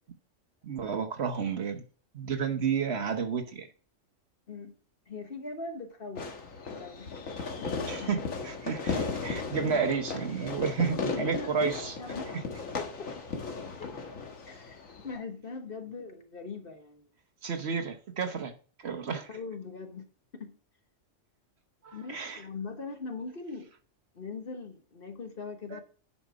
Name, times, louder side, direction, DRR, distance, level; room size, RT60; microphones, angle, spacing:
voice 1, 0.6-1.8 2.1-3.7 7.9-11.9 17.4-18.5 18.8-19.3 21.8-22.4 25.7-25.8, right 6 dB, 55° right, 1.2 m, -31 dB
voice 2, 5.1-6.3 6.7-7.1 7.6-8.2 9.6-10.0 10.8-12.3 12.8-13.2 13.8-14.2 14.5-17.1 19.3-20.6 21.9-23.7 24.1-25.8, left 4 dB, 45° left, 1.3 m, -41 dB
Fireworks, 6.1-15.2, left 4 dB, 80° left, 1.8 m, -36 dB
10.0 x 5.2 x 4.8 m
omnidirectional pair, 1.3 m